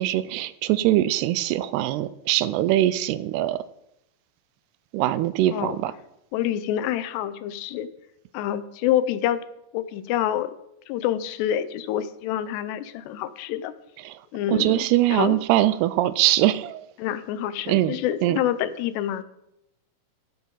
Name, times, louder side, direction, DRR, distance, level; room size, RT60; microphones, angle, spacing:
voice 1, 0.0-3.6 4.9-5.9 14.1-14.2 14.5-16.9 17.7-18.0 18.2-18.4, right 14 dB, 85° right, 15 dB, 2.6 m, -22 dB
voice 2, 6.3-7.9 8.3-9.4 9.7-10.5 10.9-13.7 14.3-15.4 17.0-19.2, left 11 dB, 90° left, 13 dB, 2.9 m, -27 dB
13.0 x 11.5 x 4.0 m, 0.83 s
omnidirectional pair, 4.8 m